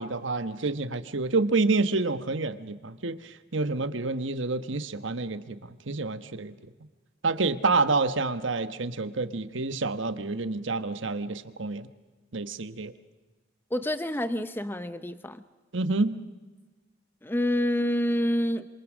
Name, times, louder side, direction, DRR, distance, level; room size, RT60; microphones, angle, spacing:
voice 1, 0.0-6.5 7.2-11.9 12.3-12.9 15.7-16.2, right 3 dB, 75° right, 11 dB, 1.2 m, -28 dB
voice 2, 13.7-15.4 17.2-18.7, equal, 10° left, 12 dB, 0.7 m, -27 dB
27.0 x 26.5 x 6.3 m, 1.2 s
head